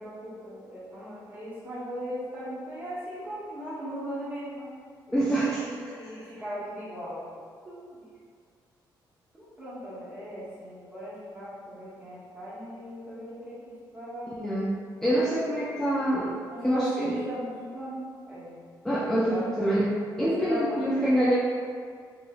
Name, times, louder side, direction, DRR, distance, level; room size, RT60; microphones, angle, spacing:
voice 1, 0.0-4.7 5.6-7.3 7.6-8.0 9.3-13.6 13.9-14.3 16.5-18.0 18.2-18.6 19.0-19.4 20.2-21.1, equal, 20° right, -10 dB, 1.1 m, -38 dB
voice 2, 5.1-5.8 14.4-16.4 16.6-17.2 18.8-21.4, right 1 dB, 5° left, -7 dB, 0.3 m, -26 dB
2.9 x 2.7 x 2.3 m, 2.1 s
cardioid pair, 130°, 8 cm